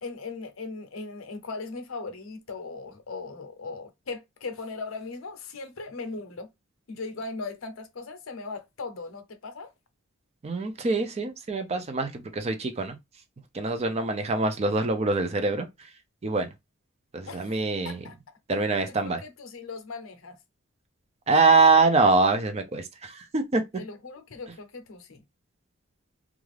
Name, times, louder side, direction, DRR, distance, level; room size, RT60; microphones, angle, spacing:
voice 1, 0.0-6.5 6.9-9.7 17.3-17.5 17.8-18.2 18.9-20.4 23.8-25.2, left 3 dB, 70° left, 0.6 m, -38 dB
voice 2, 10.4-13.0 13.5-15.7 16.2-16.5 17.1-18.0 18.5-19.2 21.3-23.6, right 3 dB, 30° right, 0.4 m, -24 dB
2.4 x 2.4 x 3.2 m
head